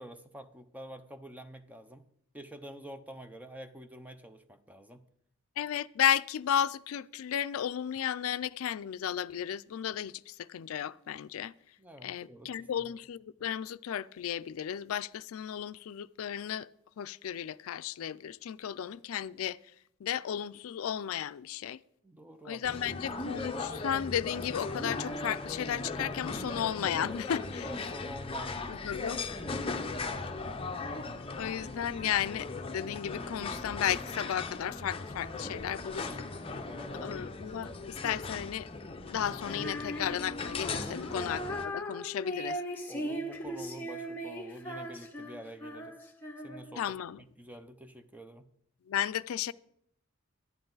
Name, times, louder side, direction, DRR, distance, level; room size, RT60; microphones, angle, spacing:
voice 1, 0.0-2.0 2.3-5.0 11.8-12.9 22.0-22.6 27.6-28.8 29.9-30.2 36.0-36.3 36.6-37.6 40.7-41.0 42.9-46.0 46.4-48.4, equal, 10° right, 0.7 m, -48 dB
voice 2, 5.6-11.5 12.0-16.7 17.0-19.6 20.0-21.8 22.4-27.7 28.7-29.3 31.4-36.6 37.0-38.7 39.1-42.6 46.8-47.2 48.9-49.5, left 9 dB, 85° left, 0.4 m, -34 dB
sound 1, 22.6-41.7, left 3 dB, 25° left, 0.8 m, -38 dB
Female singing, 39.4-46.8, equal, 10° left, 1.5 m, -39 dB
11.0 x 10.5 x 3.9 m
head